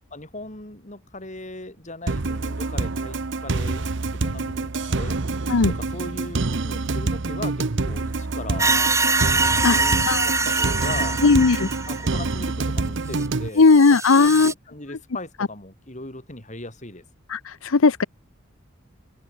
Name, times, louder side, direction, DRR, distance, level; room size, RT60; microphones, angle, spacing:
voice 1, 0.1-3.8 4.1-5.2 5.7-8.7 9.7-11.3 11.9-13.7 14.1-17.0, left 2 dB, 35° left, 6.4 m, -38 dB
sound 1, 2.1-13.5, right 3 dB, 60° right, 0.9 m, -27 dB
sound 2, 8.6-12.3 13.2-13.3 13.6-14.5, right 3 dB, 15° right, 2.1 m, -23 dB
voice 2, 9.6-10.3 11.2-11.7 13.6-14.5 17.3-18.0, left 4 dB, 85° left, 0.8 m, -17 dB
open air
head